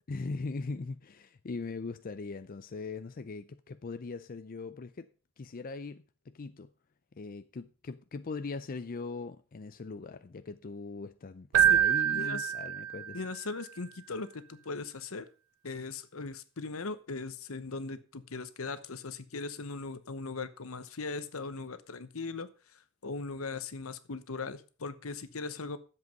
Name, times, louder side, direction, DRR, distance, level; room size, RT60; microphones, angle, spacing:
voice 1, 0.1-5.1 5.4-6.7 7.1-13.2, left 3 dB, 40° left, 0.5 m, -40 dB
Keyboard (musical), 11.5-13.4, right 10 dB, 80° right, 0.4 m, -26 dB
voice 2, 12.1-12.5 13.1-15.3 15.6-25.8, left 3 dB, 70° left, 1.0 m, -39 dB
11.0 x 7.7 x 5.3 m
head